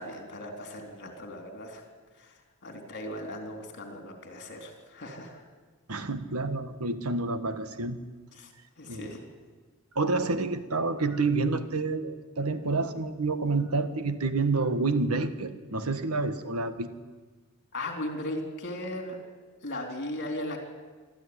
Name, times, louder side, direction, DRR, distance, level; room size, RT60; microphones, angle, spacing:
voice 1, 0.0-1.8 2.2-5.4 8.4-9.2 17.7-19.2 19.6-20.6, left 1 dB, 50° left, 4 dB, 3.9 m, -37 dB
voice 2, 5.9-8.0 8.9-9.1 9.9-16.9, right 3 dB, 80° right, 10 dB, 1.5 m, -28 dB
24.5 x 13.5 x 9.8 m, 1.4 s
head